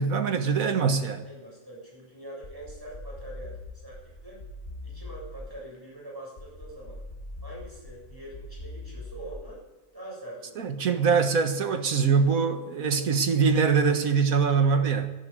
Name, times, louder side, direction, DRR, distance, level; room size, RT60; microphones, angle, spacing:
voice 1, 0.0-1.2 10.6-15.1, right 5 dB, 85° right, 1.9 m, -23 dB
voice 2, 1.2-3.6 3.8-4.4 4.8-7.0 7.4-9.6 9.9-10.8 12.9-13.1, right 1 dB, 15° right, 7.7 m, -44 dB
sound 1, 2.4-5.7 6.4-9.7, left 2 dB, 50° left, 1.8 m, -42 dB
13.5 x 11.0 x 9.1 m
omnidirectional pair, 1.4 m